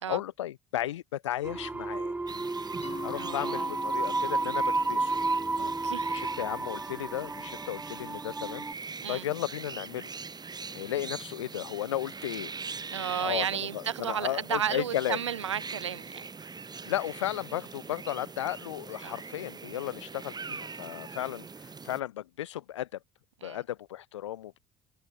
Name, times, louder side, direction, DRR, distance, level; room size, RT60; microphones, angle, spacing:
voice 1, 0.1-2.1 3.0-5.1 6.1-8.6 9.1-10.1 10.7-12.5 13.2-13.5 13.7-15.2 16.9-21.5 21.8-22.9 23.4-24.6, left 12 dB, 85° left, 0.4 m, -34 dB
sound 1, 1.4-8.7, right 3 dB, 10° right, 0.3 m, -32 dB
sound 2, 2.3-22.0, right 4 dB, 30° right, 2.8 m, -43 dB
Mallet percussion, 2.8-8.2, left 8 dB, 45° left, 6.6 m, -47 dB
voice 2, 3.2-3.7 5.6-6.2 9.0-9.3 12.9-16.3 19.0-19.1 23.4-23.6, right 9 dB, 90° right, 0.6 m, -33 dB
hypercardioid pair, 55°, 15 cm